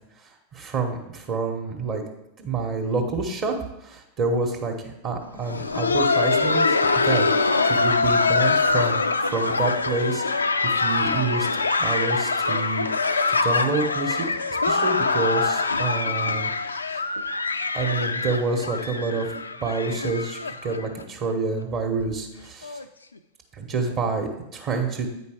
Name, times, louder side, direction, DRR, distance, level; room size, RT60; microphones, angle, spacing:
voice 1, 0.5-2.0 2.4-3.5 3.8-6.8 7.0-10.2 10.7-11.5 11.8-12.9 13.3-14.2 14.7-16.5 17.7-19.3 19.6-22.8 23.6-25.1, right 3 dB, 40° right, 1 dB, 1.2 m, -27 dB
Laughter, 5.3-21.0 21.3-21.4 22.0-22.1 22.6-22.8 23.9-24.0, left 3 dB, 80° left, 0.4 m, -24 dB
8.9 x 5.2 x 4.9 m, 0.87 s
figure-of-eight pair, 90°, 0 cm